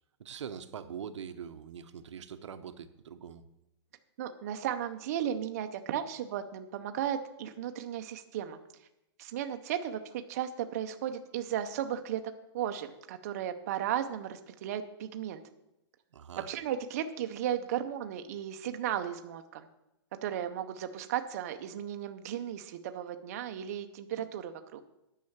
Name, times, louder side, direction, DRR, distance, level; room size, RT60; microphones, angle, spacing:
voice 1, 0.2-3.4 16.1-16.5, right 8 dB, 85° right, 10 dB, 0.8 m, -43 dB
voice 2, 4.2-8.6 9.2-12.2 12.5-15.4 16.5-19.7 20.2-24.8, right 10 dB, 35° right, 7 dB, 0.5 m, -35 dB
9.5 x 5.6 x 7.2 m, 0.88 s
hypercardioid pair, 175°, 15 cm